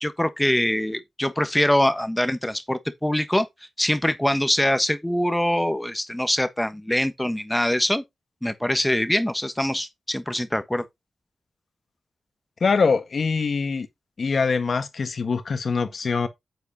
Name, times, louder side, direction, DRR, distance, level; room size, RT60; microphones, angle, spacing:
voice 1, 0.0-3.5 3.8-8.0 8.4-10.8, left 1 dB, 10° left, 1.3 m, -23 dB
voice 2, 12.6-13.9 14.2-16.3, left 5 dB, 60° left, 1.5 m, -23 dB
9.0 x 8.1 x 2.9 m
supercardioid pair, 45°, 0 cm